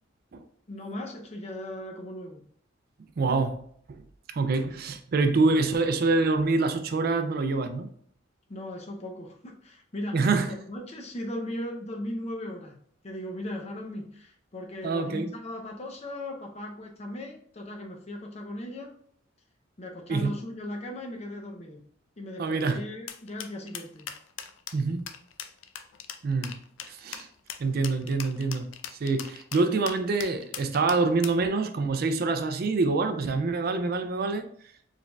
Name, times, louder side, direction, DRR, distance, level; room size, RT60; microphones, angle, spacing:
voice 1, 0.7-2.4 8.5-12.8 13.0-18.9 19.8-21.8 22.2-24.1, left 1 dB, 35° left, 0.6 m, -37 dB
voice 2, 3.2-3.6 4.3-7.9 10.1-10.5 14.8-15.3 20.1-20.3 22.4-22.8 24.7-25.0 26.2-26.5 26.9-27.3 27.6-28.7 29.0-34.5, right 3 dB, 50° right, 0.4 m, -26 dB
sound 1, 23.1-31.4, left 9 dB, 90° left, 0.4 m, -39 dB
4.6 x 3.3 x 2.3 m
head